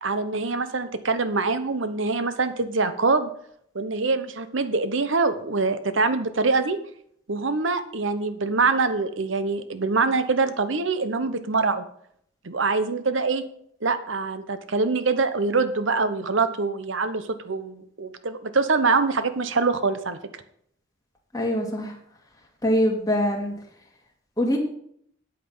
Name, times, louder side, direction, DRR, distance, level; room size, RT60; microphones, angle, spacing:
voice 1, 0.0-3.3 3.7-6.8 7.3-11.8 12.4-13.4 13.8-20.2, right 4 dB, 75° right, 11 dB, 1.0 m, -24 dB
voice 2, 21.3-21.9 22.6-23.5 24.4-24.6, equal, 20° left, 0 dB, 2.3 m, -23 dB
8.5 x 8.5 x 5.6 m, 0.67 s
head